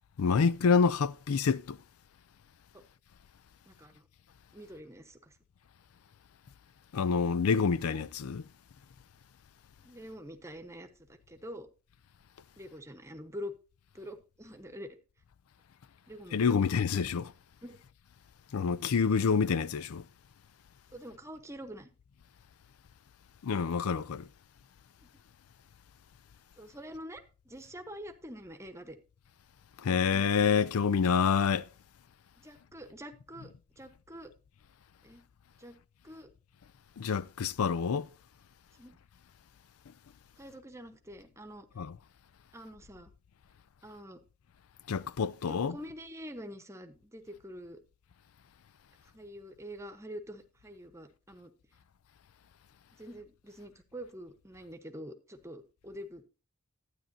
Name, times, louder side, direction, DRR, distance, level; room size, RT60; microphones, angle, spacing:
voice 1, 0.2-1.8 6.9-8.4 16.3-17.3 18.5-20.0 23.4-24.2 29.8-31.6 37.0-38.1 41.8-41.9 44.9-45.8, left 5 dB, 85° left, 0.4 m, -27 dB
voice 2, 3.7-4.0 4.5-5.4 9.8-11.7 12.6-13.5 13.9-15.0 16.1-16.6 17.6-17.8 20.9-21.9 25.0-25.1 26.6-29.0 29.8-30.1 32.4-33.5 33.8-34.3 35.0-35.2 35.6-35.8 36.0-36.3 38.8-39.0 40.4-41.7 42.5-43.1 43.8-44.2 45.5-47.8 49.0-51.5 53.0-56.2, equal, 15° right, 1.0 m, -46 dB
12.5 x 9.0 x 2.7 m
head